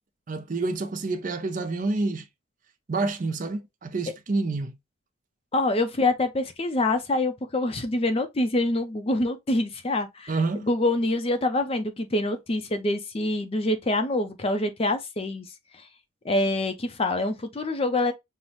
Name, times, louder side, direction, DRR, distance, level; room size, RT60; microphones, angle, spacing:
voice 1, 0.3-2.3 2.9-4.8 10.3-10.7, right 3 dB, 40° right, 0.4 m, -28 dB
voice 2, 5.5-15.5 16.2-18.1, left 2 dB, 25° left, 0.4 m, -25 dB
5.5 x 2.0 x 3.0 m
head